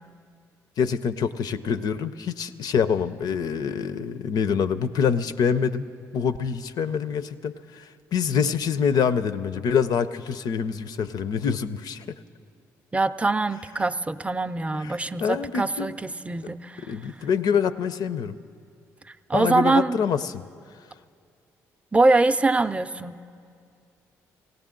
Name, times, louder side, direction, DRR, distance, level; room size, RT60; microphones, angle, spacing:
voice 1, 0.8-12.2 14.8-14.9 15.2-15.9 16.9-18.4 19.3-20.4, left 7 dB, 65° left, 12 dB, 0.5 m, -26 dB
voice 2, 12.9-16.9 19.3-20.0 21.9-23.2, right 3 dB, 15° right, 11 dB, 0.5 m, -23 dB
17.5 x 17.0 x 3.8 m, 2.3 s
hypercardioid pair, 55°, 7 cm